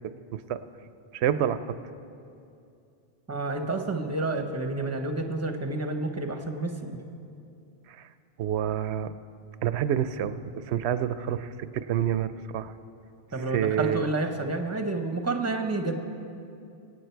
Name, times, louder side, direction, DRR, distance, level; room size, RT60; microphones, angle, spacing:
voice 1, 1.1-1.6 8.4-9.1 9.6-10.4 10.7-12.7 13.5-14.0, right 10 dB, 90° right, 12 dB, 0.8 m, -27 dB
voice 2, 3.3-7.0 13.3-16.0, right 2 dB, 15° right, 5 dB, 0.9 m, -29 dB
23.5 x 9.0 x 4.5 m, 2.6 s
omnidirectional pair, 1.1 m